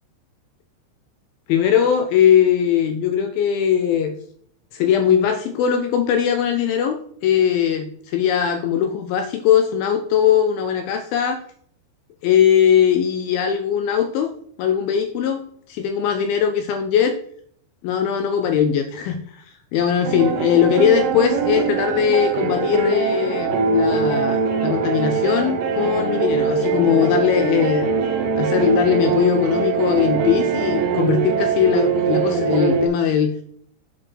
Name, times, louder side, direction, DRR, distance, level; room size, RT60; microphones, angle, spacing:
voice 1, 1.5-4.2 4.7-11.4 12.2-14.3 14.6-17.2 17.8-19.4 19.7-27.9 28.4-33.4, left 8 dB, 85° left, 7 dB, 2.1 m, -20 dB
sound 1, 20.0-32.9, right 5 dB, 75° right, 2.1 m, -22 dB
8.8 x 4.4 x 4.5 m, 0.63 s
omnidirectional pair, 4.9 m